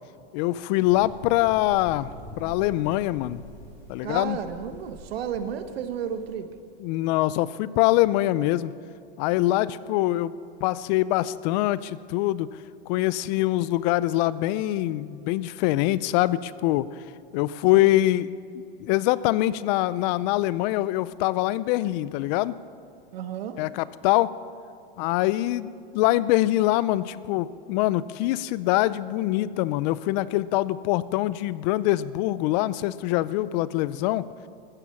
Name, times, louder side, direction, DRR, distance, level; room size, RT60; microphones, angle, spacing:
voice 1, 0.3-2.1 2.4-3.4 3.9-4.4 6.8-8.7 9.2-10.3 10.6-12.5 12.9-16.9 17.3-18.3 18.8-22.5 23.6-24.3 25.0-34.2, left 16 dB, 45° left, 18 dB, 0.5 m, -24 dB
sound 1, 0.9-6.3, right 1 dB, 5° left, 5.2 m, -45 dB
voice 2, 4.0-6.5 17.7-18.0 23.1-23.6, right 8 dB, 75° right, 9 dB, 1.5 m, -33 dB
14.5 x 13.5 x 7.0 m, 2.5 s
hypercardioid pair, 130°, 30 cm